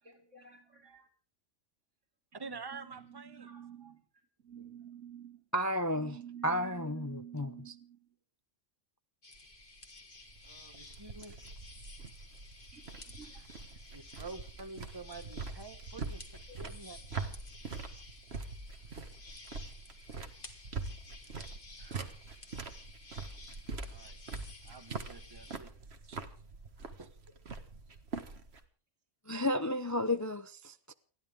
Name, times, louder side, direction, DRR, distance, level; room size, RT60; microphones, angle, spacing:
voice 1, 0.0-1.1 2.4-4.0 4.4-5.4 5.9-8.1 11.2-11.4 12.7-13.7 16.5-16.6 19.8-19.9, right 9 dB, 70° right, 2.9 m, -50 dB
voice 2, 2.3-3.5 10.4-11.4 13.4-13.5 13.9-17.3 21.8-22.1 23.9-24.2 24.6-25.7 26.1-26.2 26.8-27.2, right 4 dB, 20° right, 1.3 m, -48 dB
voice 3, 5.5-6.2 6.4-7.7 29.3-30.9, left 1 dB, 20° left, 0.6 m, -32 dB
sound 1, 9.2-25.6, left 3 dB, 40° left, 2.3 m, -54 dB
sound 2, 9.3-28.6, right 4 dB, 55° right, 1.8 m, -44 dB
29.5 x 11.5 x 3.6 m
omnidirectional pair, 1.3 m